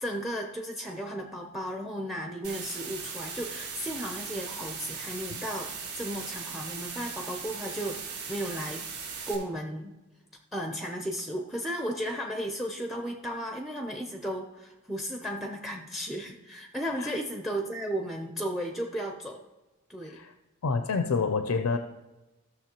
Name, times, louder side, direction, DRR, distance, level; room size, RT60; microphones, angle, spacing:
voice 1, 0.0-8.9 9.3-9.9 10.5-19.4 19.9-20.2, equal, ahead, 2 dB, 0.6 m, -34 dB
sound 1, 2.4-9.4, right 5 dB, 90° right, 3.4 m, -38 dB
voice 2, 20.6-21.8, left 4 dB, 85° left, 7 dB, 0.5 m, -28 dB
15.5 x 6.5 x 2.9 m, 1.1 s
head